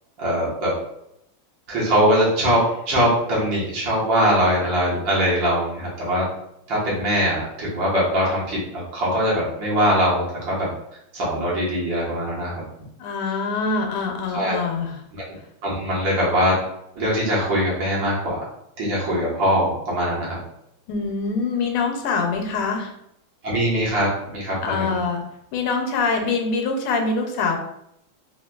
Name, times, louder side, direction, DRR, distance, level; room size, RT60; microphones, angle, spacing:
voice 1, 0.2-0.7 1.7-6.3 6.7-10.7 11.1-12.6 14.3-14.6 15.1-15.2 15.6-16.5 17.0-18.4 18.8-20.4 23.4-25.0, equal, 60° right, -6 dB, 1.7 m, -22 dB
voice 2, 13.0-15.0 20.9-22.9 24.6-25.2 25.5-27.6, left 4 dB, 85° left, 3 dB, 1.5 m, -24 dB
3.8 x 2.8 x 2.2 m, 0.77 s
omnidirectional pair, 2.4 m